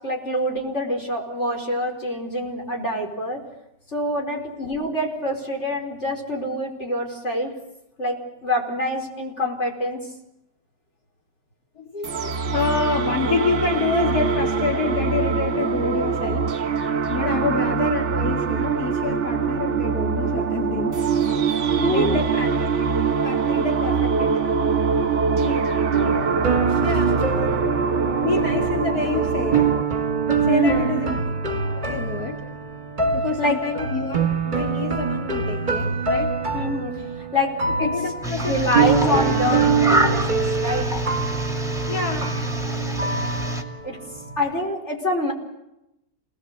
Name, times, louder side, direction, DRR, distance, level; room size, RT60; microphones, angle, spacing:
voice 1, 0.0-3.4 3.9-7.5 8.0-10.1 17.3-17.5 21.8-22.3 25.4-25.8 30.5-31.1 33.4-33.6 36.5-36.9 37.3-37.9 38.4-40.9 43.8-44.0 44.4-45.3, left 1 dB, 45° left, 1 dB, 5.3 m, -26 dB
voice 2, 11.8-16.5 17.1-21.1 21.9-24.3 26.8-27.4 28.2-29.7 30.4-31.2 31.7-32.4 33.1-34.2 34.4-36.3 37.8-39.4 41.9-42.4, left 4 dB, 70° left, 1 dB, 2.9 m, -27 dB
sound 1, 12.0-29.8, right 5 dB, 50° right, 1.5 m, -23 dB
sound 2, 25.9-44.5, right 5 dB, 30° right, 2.2 m, -25 dB
sound 3, 38.2-43.6, right 1 dB, ahead, 2.6 m, -26 dB
29.0 x 19.5 x 8.1 m, 0.87 s
omnidirectional pair, 1.7 m